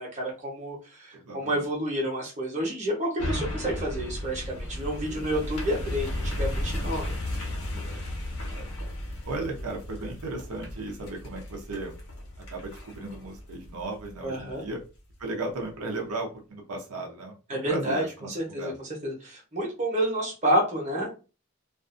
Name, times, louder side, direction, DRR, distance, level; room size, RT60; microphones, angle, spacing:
voice 1, 0.0-7.1 14.2-14.6 17.5-21.1, right 1 dB, 30° right, -2 dB, 0.9 m, -29 dB
voice 2, 1.1-1.6 5.1-5.4 7.7-8.0 8.4-8.7 9.2-11.9 12.5-14.8 15.2-18.7, right 2 dB, 85° right, 1 dB, 0.6 m, -36 dB
sound 1, 3.2-14.6 15.1-15.2, left 1 dB, 90° left, 1.0 m, -34 dB
2.5 x 2.4 x 2.5 m, 0.32 s
head